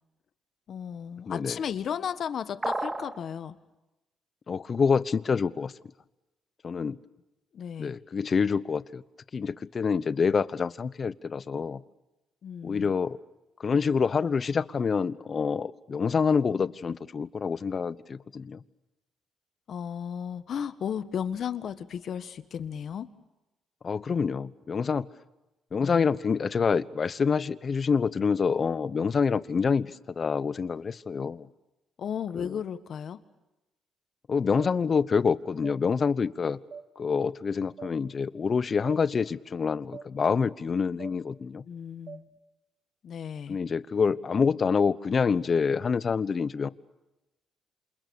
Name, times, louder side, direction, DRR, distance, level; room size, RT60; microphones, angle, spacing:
voice 1, 0.7-3.6 7.5-7.9 12.4-12.9 19.7-23.1 25.8-26.1 32.0-33.2 41.7-42.2 43.0-43.6, left 8 dB, 60° left, 12 dB, 1.5 m, -34 dB
voice 2, 1.3-1.6 4.5-5.7 6.6-7.0 7.8-9.0 9.3-11.8 12.6-13.2 13.6-18.6 23.8-25.1 25.7-31.5 32.3-32.6 34.3-36.6 37.0-41.6 43.5-46.7, left 5 dB, 40° left, 17 dB, 1.0 m, -27 dB
sound 1, 2.6-3.2, right 2 dB, 20° right, 2.3 m, -31 dB
sound 2, 34.6-34.7 35.6-35.8 36.7-36.9 37.8-37.9 38.9-39.0 39.9-40.1 41.0-41.2 42.1-42.2, right 6 dB, 55° right, 2.1 m, -42 dB
28.5 x 27.5 x 7.1 m, 1.0 s
cardioid pair, 90°, 0 cm